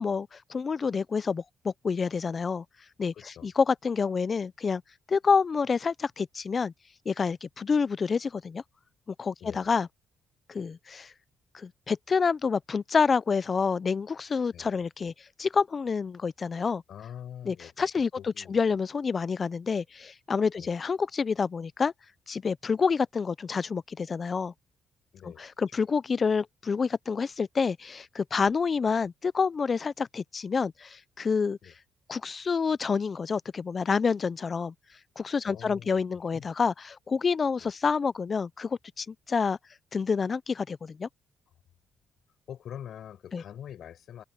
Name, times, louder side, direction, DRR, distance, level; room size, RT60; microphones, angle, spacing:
voice 1, 0.0-2.6 3.0-3.1 3.4-4.8 5.1-6.7 7.1-8.6 9.2-9.9 10.5-11.1 11.5-15.1 15.4-16.8 17.5-18.1 18.5-21.9 22.3-24.5 25.2-25.3 25.6-31.6 32.1-34.7 35.2-39.6 39.9-41.1 43.3-43.4, left 5 dB, 40° left, 0.5 m, -28 dB
voice 2, 3.1-3.5 9.4-9.7 14.5-14.7 16.9-17.9 18.2-18.6 20.6-20.7 25.1-25.5 31.6-31.7 35.4-36.5 37.6-37.7 42.5-44.2, left 10 dB, 70° left, 5.6 m, -44 dB
cardioid pair, 90°, 0 cm